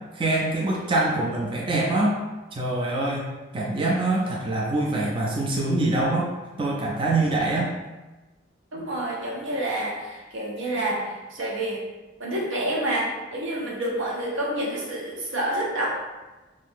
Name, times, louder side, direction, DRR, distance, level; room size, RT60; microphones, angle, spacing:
voice 1, 0.1-2.2 2.5-6.3 6.6-7.7, right 2 dB, 25° right, -3 dB, 0.4 m, -24 dB
voice 2, 8.7-11.8 12.2-15.9, right 1 dB, 80° right, -3 dB, 0.8 m, -28 dB
2.6 x 2.6 x 3.5 m, 1.1 s
head